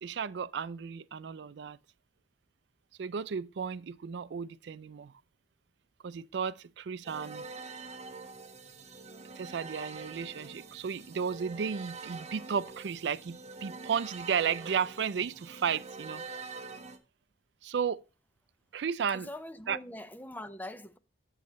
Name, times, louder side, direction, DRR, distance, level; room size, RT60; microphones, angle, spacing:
voice 1, 0.0-1.8 3.0-5.1 6.0-7.5 9.3-16.2 17.6-18.0 18.7-19.3 19.7-19.8, right 7 dB, 65° right, 0.4 m, -34 dB
sound 1, 7.0-17.0, right 4 dB, 35° right, 1.0 m, -45 dB
voice 2, 19.3-21.0, left 1 dB, 10° left, 0.5 m, -42 dB
8.0 x 7.5 x 4.1 m
head